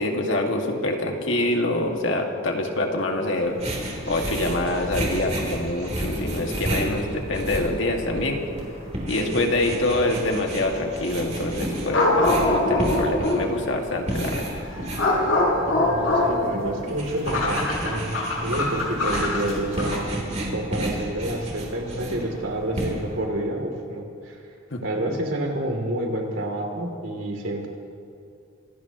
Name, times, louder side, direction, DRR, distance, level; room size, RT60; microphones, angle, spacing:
voice 1, 0.0-3.6 4.1-8.4 9.1-14.5 24.7-24.8, left 1 dB, 70° left, 1 dB, 2.0 m, -25 dB
sound 1, 3.5-23.2, right 1 dB, 35° right, 3.4 m, -32 dB
sound 2, 7.0-7.1 8.1-8.2 11.9-13.5 14.2-20.0, left 2 dB, 85° left, 4.9 m, -24 dB
voice 2, 15.7-24.4 24.8-27.7, right 1 dB, 75° right, 1 dB, 3.0 m, -29 dB
25.5 x 18.0 x 3.0 m, 2.5 s
head